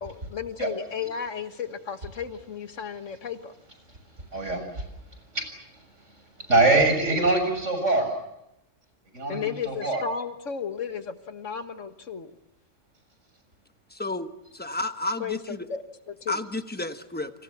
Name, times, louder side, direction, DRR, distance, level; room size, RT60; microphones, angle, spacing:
voice 1, 0.0-3.5 9.3-12.3 15.2-16.4, left 7 dB, 90° left, 8 dB, 1.9 m, -34 dB
voice 2, 4.3-4.8 5.3-5.5 6.5-8.1 9.1-10.0, right 2 dB, 80° right, 6 dB, 7.1 m, -23 dB
voice 3, 13.9-15.7 16.3-17.3, left 2 dB, 10° left, 8 dB, 1.2 m, -32 dB
29.0 x 26.0 x 7.2 m, 0.84 s
omnidirectional pair, 1.3 m